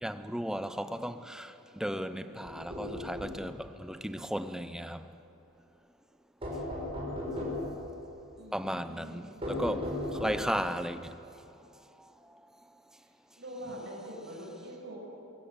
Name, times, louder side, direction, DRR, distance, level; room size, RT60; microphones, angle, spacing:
voice 1, 0.0-5.1 8.5-11.1, equal, 5° right, 0.6 m, -35 dB
sound 1, 2.4-3.4 6.4-7.7 9.4-10.6, left 1 dB, 25° right, 5.6 m, -36 dB
voice 2, 8.4-9.3 13.4-15.0, equal, 55° right, 6.6 m, -44 dB
24.0 x 16.5 x 8.0 m
head